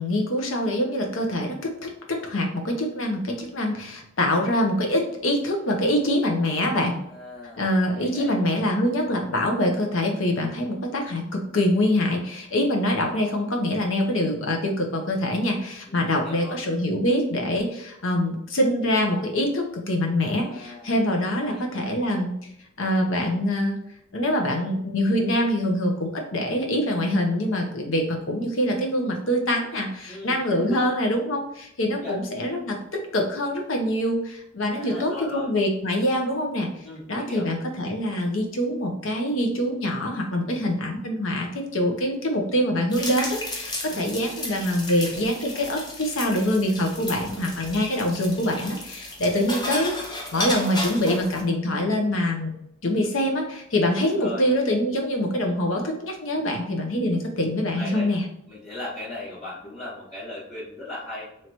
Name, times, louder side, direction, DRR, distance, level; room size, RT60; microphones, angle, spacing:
voice 1, 0.0-7.0 7.6-22.3 22.8-23.8 24.1-36.7 37.1-49.9 50.3-52.5 52.8-58.2, left 1 dB, 80° left, 2 dB, 0.8 m, -24 dB
voice 2, 7.0-7.7 7.9-8.3 15.9-16.6 20.3-20.9 21.5-22.0 30.1-30.9 31.9-32.2 34.7-35.5 36.8-37.5 43.9-44.3 54.0-54.4 57.8-58.1 58.5-61.5, left 1 dB, 35° left, -9 dB, 1.1 m, -38 dB
sound 1, 42.9-51.4, left 1 dB, 20° left, 0.7 m, -33 dB
3.1 x 2.9 x 4.2 m, 0.76 s
head